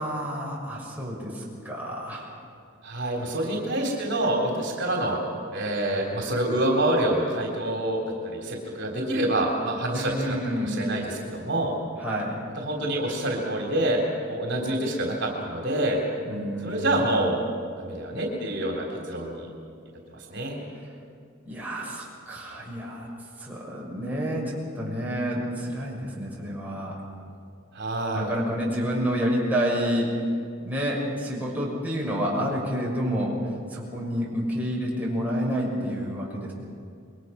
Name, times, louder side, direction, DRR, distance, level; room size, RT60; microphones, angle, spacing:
voice 1, 0.0-2.3 9.9-10.8 12.0-12.4 16.3-17.1 21.4-23.1 23.4-27.0 28.1-30.1 30.6-33.4 33.7-36.5, equal, 10° right, -4 dB, 6.4 m, -29 dB
voice 2, 2.8-5.2 5.5-11.7 12.6-14.0 14.3-16.0 16.6-17.4 17.8-19.5 20.1-20.6 27.7-28.3, right 1 dB, 60° right, -1 dB, 3.6 m, -27 dB
28.0 x 22.5 x 5.9 m, 2.3 s
head